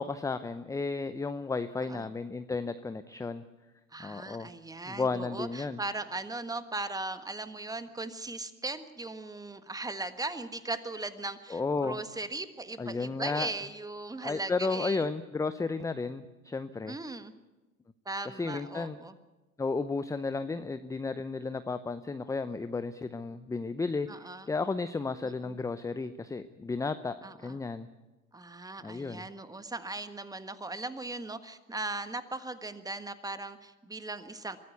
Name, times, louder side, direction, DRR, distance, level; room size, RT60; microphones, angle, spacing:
voice 1, 0.0-3.4 4.0-4.5 4.9-5.8 11.5-12.0 12.8-13.5 14.2-17.0 18.2-19.0 19.6-24.1 24.5-27.2 27.4-27.9 28.8-29.2, left 4 dB, 10° left, 12 dB, 0.6 m, -33 dB
voice 2, 3.9-15.1 16.9-17.3 18.0-19.1 24.1-24.5 25.2-25.5 27.2-27.6 28.3-34.6, right 2 dB, 10° right, 11 dB, 1.5 m, -38 dB
23.0 x 14.0 x 9.5 m, 1.1 s
hypercardioid pair, 90°, 41 cm